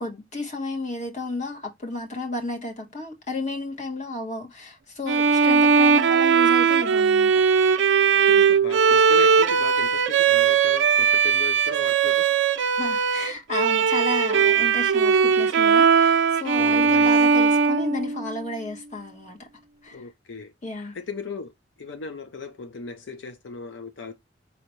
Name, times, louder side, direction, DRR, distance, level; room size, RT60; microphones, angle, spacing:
voice 1, 0.0-7.3 12.8-19.5 19.8-20.1 20.6-20.9, left 2 dB, 40° left, 1.2 m, -32 dB
Bowed string instrument, 5.1-18.5, right 6 dB, 85° right, 0.4 m, -19 dB
voice 2, 8.1-12.2 16.6-17.1 19.9-20.5 20.9-21.5 21.8-24.1, left 4 dB, 85° left, 0.6 m, -37 dB
5.5 x 2.8 x 3.1 m
head